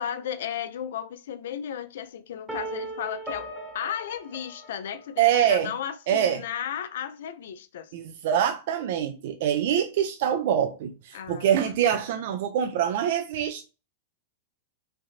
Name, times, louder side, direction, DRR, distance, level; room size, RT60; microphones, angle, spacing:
voice 1, 0.0-3.5 3.7-7.9 11.1-11.5, left 9 dB, 75° left, 0.4 m, -34 dB
sound 1, 2.5-5.4, right 2 dB, 10° right, 0.9 m, -38 dB
voice 2, 5.2-5.7 6.1-6.4 7.9-13.6, right 9 dB, 60° right, 0.4 m, -25 dB
3.2 x 2.6 x 2.4 m
hypercardioid pair, 130°, 0 cm